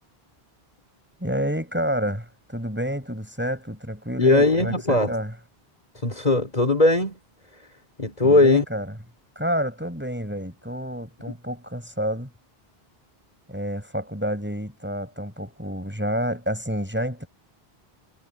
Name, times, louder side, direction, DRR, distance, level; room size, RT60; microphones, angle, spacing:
voice 1, 1.2-5.3 8.2-8.9 9.3-12.3 13.5-17.3, equal, 10° right, 6.8 m, -29 dB
voice 2, 4.2-5.1 6.0-7.1 8.0-8.6, left 2 dB, 40° left, 4.1 m, -19 dB
omnidirectional pair, 1.0 m